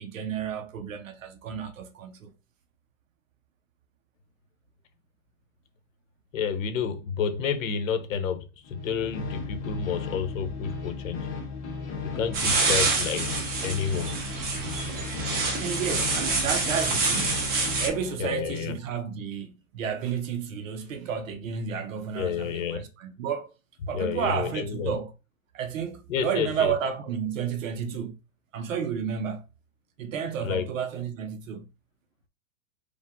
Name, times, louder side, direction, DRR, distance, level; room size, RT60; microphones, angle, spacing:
voice 1, 0.0-2.3 15.6-17.5 17.8-23.5 23.9-25.1 25.5-28.1 28.5-29.5 30.0-31.7, right 7 dB, 65° right, 0.8 m, -31 dB
voice 2, 6.3-11.3 12.0-13.3 13.6-14.1 18.2-18.7 22.1-22.8 23.9-25.0 26.1-26.7 30.4-30.7, left 7 dB, 65° left, 1.1 m, -30 dB
sound 1, 8.6-18.2, left 4 dB, 20° left, 0.5 m, -36 dB
sound 2, 12.3-17.9, right 3 dB, 20° right, 1.0 m, -27 dB
5.1 x 2.3 x 3.6 m
hypercardioid pair, 155°, 42 cm